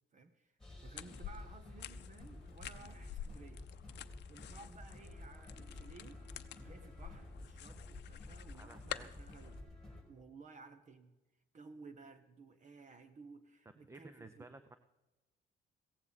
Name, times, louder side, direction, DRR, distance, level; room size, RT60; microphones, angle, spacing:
voice 1, 0.1-3.6 4.3-6.2 6.6-9.6 10.1-11.1 11.5-14.4, right 4 dB, 40° right, 10 dB, 1.1 m, -56 dB
sound 1, 0.6-10.0, left 2 dB, 5° left, 4.3 m, -52 dB
sound 2, 1.0-9.6, left 10 dB, 60° left, 0.7 m, -50 dB
voice 2, 8.5-9.2 13.9-14.8, right 2 dB, 15° right, 10 dB, 0.6 m, -54 dB
16.5 x 15.0 x 4.2 m, 1.1 s
cardioid pair, 130°, 20 cm